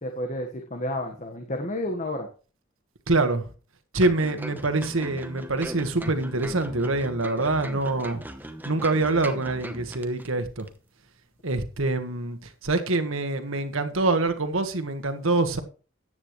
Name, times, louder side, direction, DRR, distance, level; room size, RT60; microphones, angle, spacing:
voice 1, 0.0-2.3, left 1 dB, 35° left, 1.4 m, -31 dB
voice 2, 3.1-3.4 3.9-8.2 8.6-10.7 11.4-12.4 12.6-15.6, right 2 dB, 80° right, 1.6 m, -25 dB
sound 1, 4.0-10.3 10.6-10.7, right 1 dB, 10° right, 1.0 m, -39 dB
14.0 x 9.9 x 3.2 m
head